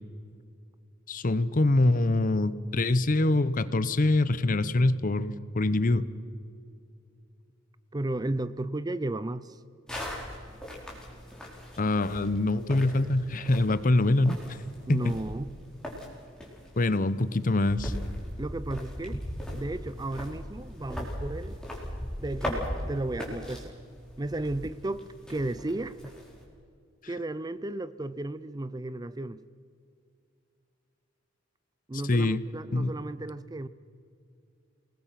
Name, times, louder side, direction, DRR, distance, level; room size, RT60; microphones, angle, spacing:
voice 1, 1.1-6.1 11.8-14.4 14.9-15.1 16.8-17.9 32.1-32.4 32.7-32.9, left 2 dB, 45° left, 16 dB, 0.8 m, -24 dB
voice 2, 7.9-9.6 14.9-15.6 18.4-19.2 19.5-21.6 22.2-23.8 24.2-26.0 27.1-29.4 31.9-33.7, right 2 dB, 20° right, 16 dB, 0.5 m, -34 dB
sound 1, 9.9-26.4, equal, 5° left, 4.3 m, -39 dB
27.5 x 19.5 x 5.9 m, 2.4 s
head